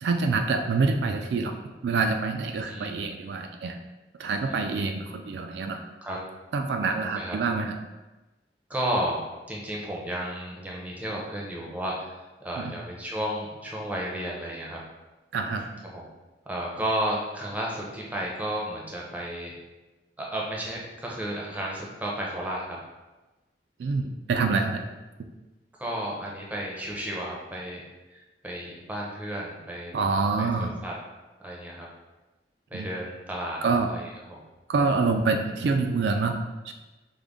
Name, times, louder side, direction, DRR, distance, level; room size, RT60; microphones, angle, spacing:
voice 1, 0.0-3.8 4.2-5.8 6.5-7.8 12.6-12.8 15.3-15.7 23.8-24.8 29.9-30.7 32.7-32.9 33.6-33.9 34.7-36.4, right 4 dB, 70° right, 4 dB, 0.3 m, -26 dB
voice 2, 4.4-4.8 6.0-6.2 7.1-7.4 8.7-9.2 9.5-12.2 12.4-14.8 15.9-16.0 16.5-19.5 20.2-22.8 25.8-27.8 28.1-30.0 30.4-30.9 31.4-31.9 32.7-33.6 33.9-34.4, right 1 dB, 10° right, -3 dB, 0.6 m, -33 dB
5.1 x 2.1 x 3.5 m, 1.1 s
head